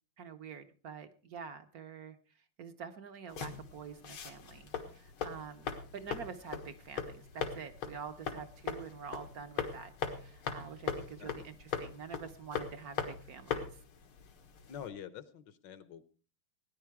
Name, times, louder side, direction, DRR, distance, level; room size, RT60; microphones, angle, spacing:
voice 1, 0.2-2.2 2.6-13.7, right 6 dB, 55° right, 9 dB, 1.1 m, -47 dB
sound 1, 3.3-14.9, left 6 dB, 90° left, 2.4 m, -41 dB
voice 2, 14.7-16.0, left 9 dB, 65° left, 14 dB, 1.4 m, -46 dB
17.0 x 10.0 x 4.7 m, 0.38 s
omnidirectional pair, 2.3 m